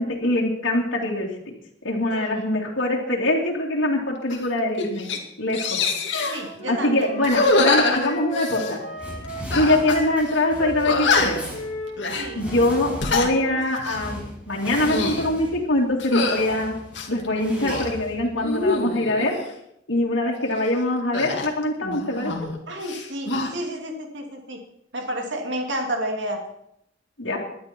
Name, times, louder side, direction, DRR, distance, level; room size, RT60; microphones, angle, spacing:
voice 1, 0.0-1.5 1.8-5.1 5.4-5.8 6.7-8.8 9.5-11.5 12.3-16.8 17.1-19.4 19.9-22.5 27.2-27.4, left 1 dB, 85° left, -4 dB, 2.8 m, -23 dB
sound 1, 4.3-4.5 4.8-5.2 5.5-6.4 7.2-8.7 9.5-10.0 10.3-10.4 10.8-11.5 12.0-12.3 12.8-13.3 13.8-14.0 14.7-15.3 16.0-16.4 16.9-17.9 18.4-19.3 21.1-22.6 22.8-23.5, left 3 dB, 65° left, 2.4 m, -24 dB
Wind instrument woodwind instrument, 6.1-13.6, equal, 50° left, 4.0 m, -35 dB
voice 2, 6.3-7.1 12.1-12.5 22.7-24.6 24.9-26.4, right 1 dB, 70° right, 2 dB, 2.7 m, -30 dB
sound 2, 9.0-18.8, equal, 5° right, 6.0 m, -38 dB
20.0 x 11.0 x 4.6 m, 0.75 s
head